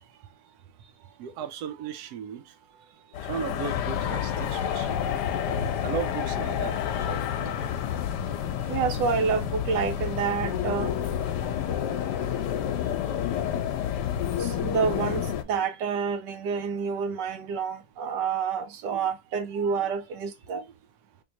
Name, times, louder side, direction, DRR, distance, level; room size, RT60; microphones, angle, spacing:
voice 1, 1.2-2.5 3.2-5.0 5.8-7.7, right 8 dB, 70° right, 1.1 m, -36 dB
sound 1, 3.1-15.4, left 9 dB, 85° left, 1.2 m, -29 dB
voice 2, 8.7-11.1 14.4-20.6, right 6 dB, 90° right, 1.4 m, -28 dB
3.7 x 3.0 x 2.8 m
omnidirectional pair, 1.8 m